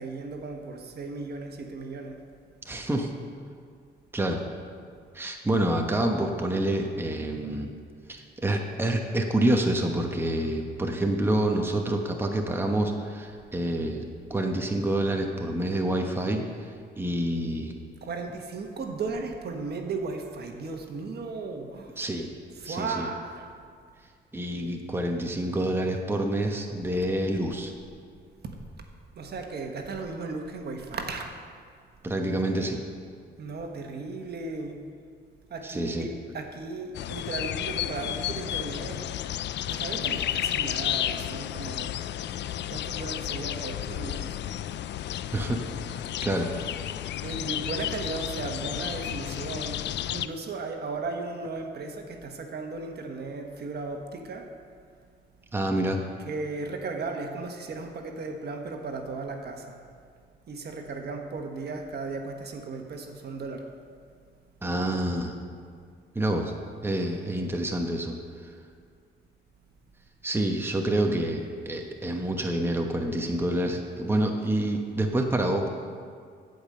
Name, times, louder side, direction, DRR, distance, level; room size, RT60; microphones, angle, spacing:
voice 1, 0.0-2.2 18.0-22.0 22.5-23.5 26.9-27.0 28.4-28.5 29.1-31.2 33.4-34.8 35.5-39.0 39.7-41.9 42.7-44.4 47.2-54.5 56.2-59.8 60.5-63.6, right 3 dB, 55° right, 3 dB, 1.4 m, -36 dB
voice 2, 2.6-3.1 4.1-4.4 5.1-7.7 8.1-14.0 14.3-16.5 17.0-17.7 22.0-22.3 22.6-23.1 24.3-27.7 32.0-32.8 35.6-36.1 45.3-46.5 55.5-56.0 64.6-65.4 66.1-66.5 66.8-68.2 70.2-75.7, right 1 dB, 10° right, 2 dB, 1.1 m, -27 dB
sound 1, 36.9-50.3, left 12 dB, 65° left, 0.4 m, -32 dB
14.0 x 5.3 x 7.7 m, 2.1 s
cardioid pair, 90°, 20 cm